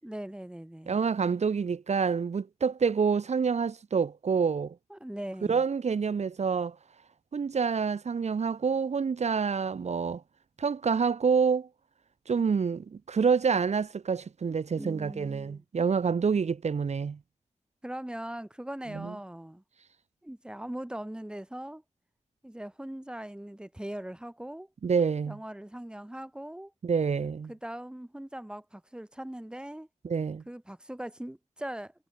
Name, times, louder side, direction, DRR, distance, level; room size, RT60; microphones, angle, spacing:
voice 1, 0.0-1.0 4.9-5.6 14.5-15.6 17.8-19.6 20.2-21.8 22.4-24.7 25.3-26.7 27.5-29.9 30.5-31.9, right 1 dB, 5° right, 6.0 m, -40 dB
voice 2, 0.9-4.7 5.5-6.8 7.3-10.2 10.6-11.7 12.3-17.2 18.9-19.1 24.8-25.4 26.8-27.5 30.0-30.4, right 5 dB, 65° right, 4.2 m, -27 dB
wide cardioid pair, 135°, 12 cm